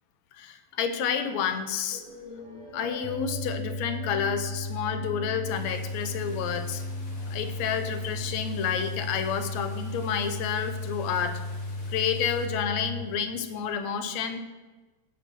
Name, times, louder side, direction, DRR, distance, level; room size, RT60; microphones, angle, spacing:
voice 1, 0.3-2.0 2.7-6.8 7.3-11.4 11.9-14.4, left 7 dB, 75° left, 9 dB, 2.0 m, -30 dB
sound 1, 1.9-9.6, equal, 75° right, 5.4 m, -46 dB
sound 2, 3.0-13.0, left 2 dB, 60° right, 1.9 m, -35 dB
sound 3, 5.4-12.5, left 2 dB, 40° left, 1.6 m, -51 dB
16.0 x 5.3 x 6.2 m, 1.2 s
omnidirectional pair, 3.4 m